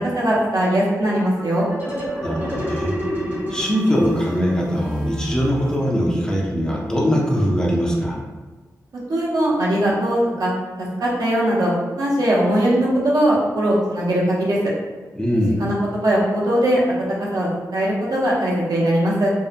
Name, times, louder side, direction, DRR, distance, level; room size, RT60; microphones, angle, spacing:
voice 1, 0.1-1.7 9.1-10.5 10.8-11.7 12.0-14.6 15.6-16.8 17.2-19.3, right 1 dB, 75° right, -5 dB, 0.6 m, -20 dB
sound 1, 1.1-6.5, equal, 35° right, 0.7 m, -29 dB
voice 2, 2.2-2.9 3.5-8.2 15.2-15.6, equal, 10° left, -3 dB, 0.4 m, -21 dB
2.6 x 2.1 x 2.4 m, 1.3 s
wide cardioid pair, 105°, 7 cm